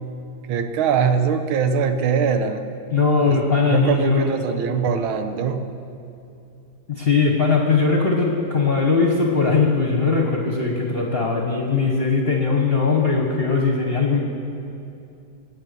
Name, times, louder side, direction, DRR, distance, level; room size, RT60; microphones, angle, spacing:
voice 1, 0.5-2.6 3.3-3.4 3.7-5.6, right 6 dB, 85° right, 8 dB, 1.7 m, -22 dB
voice 2, 2.9-4.3 6.9-14.2, left 4 dB, 35° left, 0 dB, 1.1 m, -20 dB
19.5 x 8.8 x 6.8 m, 2.6 s
omnidirectional pair, 2.2 m